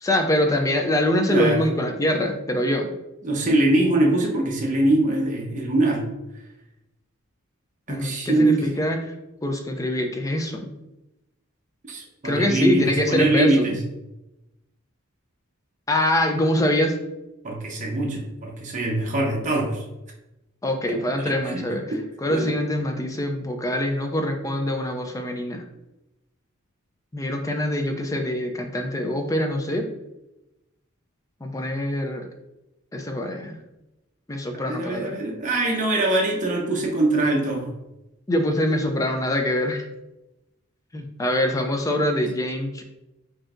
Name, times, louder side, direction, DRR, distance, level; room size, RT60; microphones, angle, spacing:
voice 1, 0.0-2.9 7.9-9.1 9.4-10.7 12.2-13.7 15.9-17.0 20.6-21.8 22.2-25.6 27.1-29.9 31.4-32.3 32.9-33.6 34.3-35.2 38.3-39.9 40.9-42.8, left 1 dB, 15° left, 4 dB, 0.4 m, -24 dB
voice 2, 1.3-1.6 3.2-6.0 7.9-8.7 11.9-13.8 17.4-19.8 20.9-21.7 22.3-22.5 34.5-37.7, right 2 dB, 35° right, -1 dB, 0.8 m, -23 dB
5.0 x 2.7 x 2.5 m, 0.96 s
head